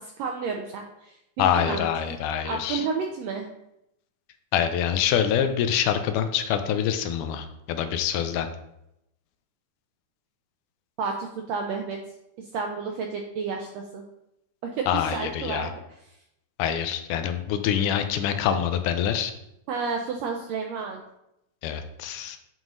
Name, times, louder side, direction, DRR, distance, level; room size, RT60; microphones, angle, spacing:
voice 1, 0.0-2.2 2.4-3.5 11.0-12.0 12.4-14.0 14.6-16.2 19.7-21.0, right 5 dB, 80° right, 2 dB, 1.5 m, -31 dB
voice 2, 1.4-2.9 4.5-8.5 14.9-15.7 16.6-19.3 21.6-22.4, left 9 dB, 85° left, 8 dB, 2.1 m, -25 dB
9.0 x 3.0 x 3.8 m, 0.82 s
omnidirectional pair, 3.6 m